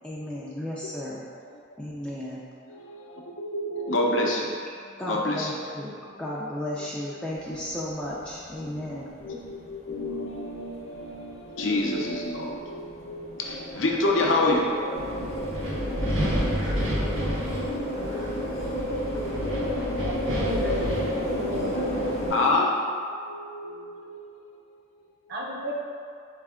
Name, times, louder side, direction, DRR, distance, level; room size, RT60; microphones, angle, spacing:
voice 1, 0.0-1.2 1.8-2.4 5.0-5.9 6.2-9.1, left 1 dB, 5° left, -7 dB, 0.3 m, -34 dB
voice 2, 2.7-4.6 4.8-5.5 6.0-6.2 9.2-14.7 17.7-18.0 21.6-21.8 22.3-23.0 23.2-24.6, left 2 dB, 70° left, -1 dB, 0.6 m, -28 dB
sound 1, 7.3-22.6, left 1 dB, 35° left, 0.7 m, -32 dB
Wind, 14.9-22.3, equal, 80° right, 1.1 m, -31 dB
voice 3, 20.0-20.9 21.3-22.0 25.3-25.7, equal, 55° right, -3 dB, 0.6 m, -33 dB
4.3 x 3.3 x 3.6 m, 2.3 s
head